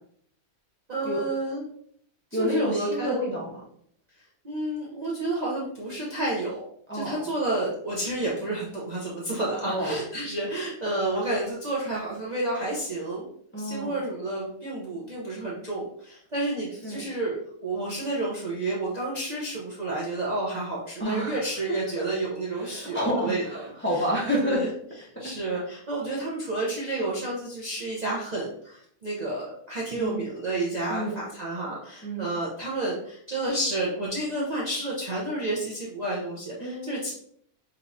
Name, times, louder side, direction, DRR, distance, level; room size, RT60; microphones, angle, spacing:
voice 1, 0.9-1.6 2.4-3.2 4.4-6.7 6.9-13.2 13.6-23.6 24.4-24.7 25.2-37.1, right 2 dB, 35° right, -6 dB, 0.8 m, -30 dB
voice 2, 2.3-3.6 6.9-7.2 9.6-10.0 13.5-14.0 16.8-17.0 21.0-21.4 22.5-24.7 25.2-25.3 29.9-30.2 30.9-31.2 32.0-32.3 36.6-36.9, equal, 10° left, -5 dB, 1.0 m, -29 dB
5.3 x 3.0 x 2.7 m, 0.66 s
omnidirectional pair, 1.4 m